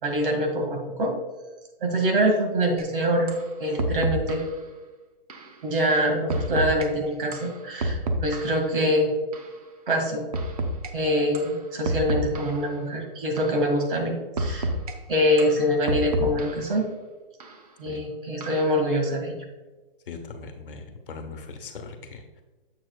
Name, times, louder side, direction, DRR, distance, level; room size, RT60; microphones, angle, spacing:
voice 1, 0.0-1.1 1.8-3.3 3.6-4.4 5.6-9.1 9.9-10.3 10.9-14.7 15.1-16.9 17.8-19.4, equal, 65° right, 2 dB, 2.0 m, -24 dB
sound 1, 2.8-2.9 3.3-3.5 3.8-4.5 5.3-5.5 6.3-6.9 7.3-8.7 9.3-9.5 10.3-10.9 11.3-11.5 11.8-12.7 13.4-13.6 14.4-14.9 15.4-16.7 17.4-17.6 18.4-18.8, right 1 dB, 40° right, 0.7 m, -29 dB
voice 2, 20.1-22.4, left 4 dB, 65° left, 5 dB, 1.2 m, -40 dB
7.4 x 7.0 x 2.3 m, 1.2 s
hypercardioid pair, 170°, 29 cm